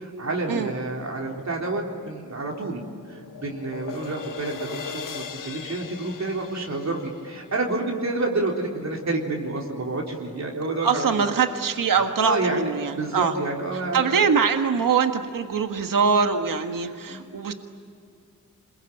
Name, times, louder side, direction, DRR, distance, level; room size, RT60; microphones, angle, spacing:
voice 1, 0.0-2.8 3.1-11.2 12.2-14.3 16.8-17.3, right 2 dB, 55° right, -1 dB, 3.9 m, -29 dB
sound 1, 2.7-8.6, left 7 dB, 70° left, 1.3 m, -39 dB
voice 2, 10.8-13.3 13.9-17.5, right 6 dB, 75° right, 6 dB, 1.7 m, -23 dB
27.0 x 22.5 x 9.2 m, 2.3 s
wide cardioid pair, 105°, 33 cm